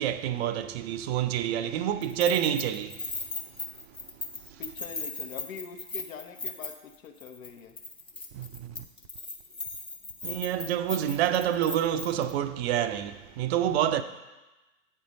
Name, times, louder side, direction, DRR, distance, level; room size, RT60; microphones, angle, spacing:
voice 1, 0.0-3.0 8.3-8.8 10.2-14.0, right 10 dB, 50° right, 0.5 m, -28 dB
Keys jangling, 2.0-7.0 7.2-7.5 7.8-12.3, left 3 dB, 10° left, 0.7 m, -37 dB
voice 2, 4.6-7.8, left 6 dB, 70° left, 1.0 m, -43 dB
8.4 x 4.5 x 5.2 m
hypercardioid pair, 100°, 42 cm